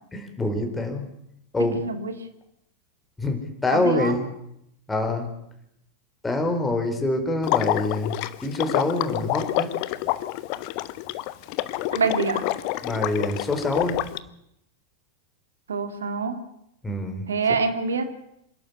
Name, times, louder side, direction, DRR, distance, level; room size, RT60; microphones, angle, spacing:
voice 1, 0.1-1.1 1.5-1.9 3.2-4.3 4.9-5.3 6.2-9.7 12.8-14.0 16.8-17.2, left 2 dB, 10° left, 4 dB, 4.6 m, -25 dB
voice 2, 1.7-2.1 3.7-4.1 11.9-12.5 15.7-16.4 17.3-18.1, right 5 dB, 70° right, 8 dB, 2.4 m, -25 dB
Water / Liquid, 7.4-14.2, left 16 dB, 45° left, 1.0 m, -28 dB
26.5 x 12.0 x 8.3 m, 0.78 s
figure-of-eight pair, 90°, 0 cm